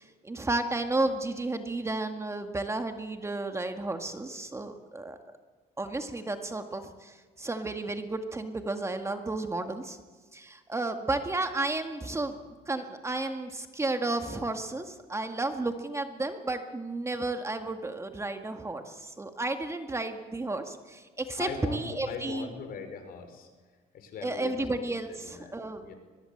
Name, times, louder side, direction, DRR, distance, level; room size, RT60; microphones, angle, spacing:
voice 1, 0.0-5.2 5.8-10.0 10.3-12.4 12.7-22.5 24.2-25.8, right 2 dB, 15° right, 6 dB, 1.9 m, -32 dB
voice 2, 21.4-23.5 23.9-24.6 25.1-25.5 25.8-25.9, left 5 dB, 60° left, 7 dB, 4.9 m, -40 dB
23.0 x 21.0 x 8.0 m, 1.4 s
cardioid pair, 110°, 17 cm